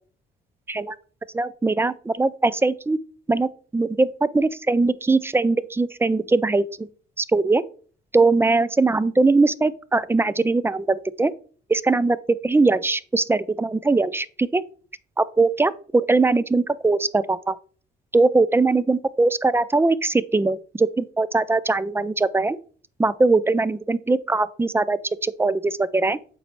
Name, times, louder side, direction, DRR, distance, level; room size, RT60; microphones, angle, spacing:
voice 1, 1.3-3.0 3.3-6.7 7.2-7.6 8.1-11.3 11.7-14.6 15.2-17.6 18.1-22.6 23.0-26.2, right 3 dB, 10° right, 0.3 m, -21 dB
7.8 x 4.1 x 3.1 m
cardioid pair, 90°, 20 cm